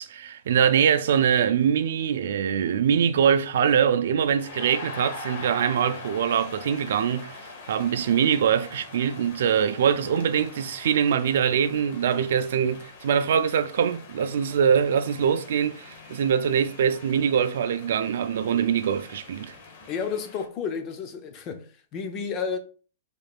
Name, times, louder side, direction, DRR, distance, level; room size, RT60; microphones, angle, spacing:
voice 1, 0.0-7.4 7.7-19.5, right 8 dB, 70° right, 0.4 m, -23 dB
sound 1, 3.8-20.5, left 3 dB, 55° left, 1.1 m, -43 dB
voice 2, 19.9-22.6, left 6 dB, 30° left, 0.6 m, -31 dB
3.7 x 3.5 x 2.4 m
hypercardioid pair, 150°, 0 cm